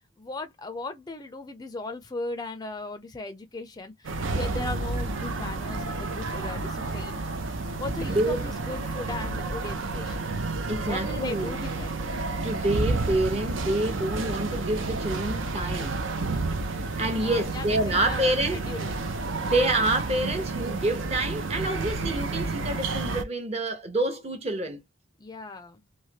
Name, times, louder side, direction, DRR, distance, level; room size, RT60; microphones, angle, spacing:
voice 1, 0.2-7.2 7.8-10.3 10.9-11.9 17.2-18.9 25.2-25.8, left 2 dB, 20° left, 0.4 m, -37 dB
sound 1, 4.0-23.2, right 3 dB, 75° right, 0.6 m, -30 dB
voice 2, 8.1-8.4 10.7-11.6 12.4-16.0 17.0-18.7 19.4-24.8, right 1 dB, 30° right, 0.7 m, -27 dB
3.1 x 2.2 x 2.7 m
head